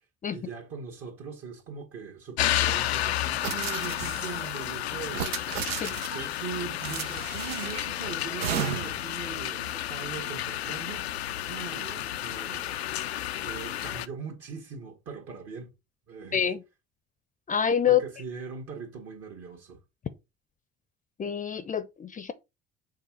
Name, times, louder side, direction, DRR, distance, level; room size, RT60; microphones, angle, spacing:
voice 1, 0.3-5.3 5.8-11.1 11.5-12.8 13.4-15.7 16.1-16.5 17.9-19.8, right 5 dB, 50° right, 1.8 m, -40 dB
sound 1, 2.4-14.1, left 12 dB, 80° left, 0.5 m, -31 dB
sound 2, 3.4-4.5 5.1-6.3 6.8-7.9 8.4-9.1, right 9 dB, 70° right, 0.8 m, -34 dB
voice 2, 17.5-18.0 21.2-22.3, left 8 dB, 25° left, 0.7 m, -26 dB
6.7 x 3.8 x 4.6 m
figure-of-eight pair, 55°, 31 cm